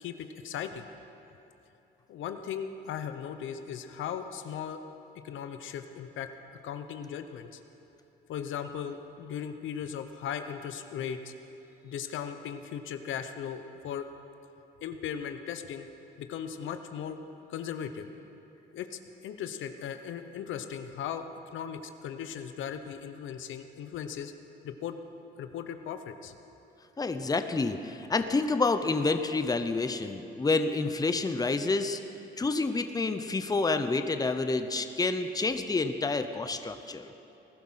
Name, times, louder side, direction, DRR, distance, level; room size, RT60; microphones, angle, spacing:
voice 1, 0.0-0.8 2.1-4.8 5.2-6.3 6.6-7.6 8.3-11.3 11.8-14.1 14.8-15.9 16.2-17.2 17.5-18.1 18.7-21.2 21.5-24.3 24.6-24.9 25.4-26.3, left 8 dB, 80° left, 8 dB, 0.9 m, -37 dB
voice 2, 27.0-32.0 32.4-37.1, left 3 dB, 20° left, 8 dB, 0.8 m, -28 dB
19.5 x 11.5 x 5.7 m, 2.9 s
cardioid pair, 90°, 20 cm